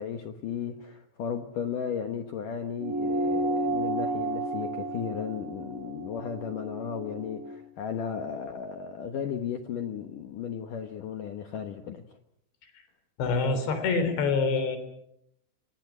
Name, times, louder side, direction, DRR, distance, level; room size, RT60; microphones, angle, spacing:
voice 1, 0.0-12.2, left 7 dB, 80° left, 6 dB, 1.8 m, -35 dB
sound 1, 2.8-7.6, right 2 dB, 70° right, 4.4 m, -32 dB
voice 2, 13.2-14.8, left 4 dB, 60° left, 10 dB, 5.6 m, -26 dB
28.5 x 24.5 x 6.2 m, 0.76 s
omnidirectional pair, 5.7 m